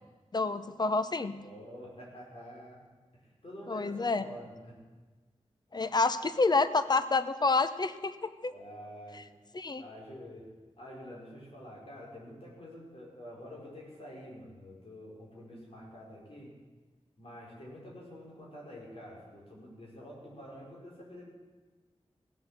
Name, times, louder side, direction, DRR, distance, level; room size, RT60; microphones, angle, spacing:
voice 1, 0.3-1.4 3.7-4.2 5.7-8.5 9.5-9.8, left 3 dB, 40° left, 12 dB, 0.7 m, -28 dB
voice 2, 1.3-2.8 3.1-4.8 8.5-9.2 9.8-10.5 10.8-16.5 17.2-21.2, equal, 55° left, -4 dB, 4.7 m, -47 dB
16.5 x 7.6 x 7.4 m, 1.3 s
wide cardioid pair, 100°, 11 cm